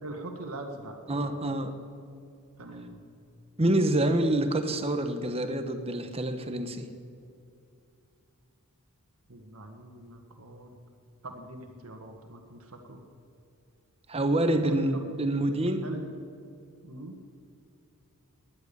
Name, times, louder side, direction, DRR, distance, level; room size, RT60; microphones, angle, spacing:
voice 1, 0.0-1.4 2.6-3.0 9.3-10.7 11.2-13.0 14.6-15.0 15.8-16.1 16.8-17.1, right 2 dB, 70° right, 4 dB, 1.7 m, -42 dB
voice 2, 1.1-1.7 3.6-6.9 14.1-15.9, right 1 dB, 25° right, 9 dB, 1.1 m, -27 dB
19.0 x 11.0 x 6.9 m, 2.6 s
head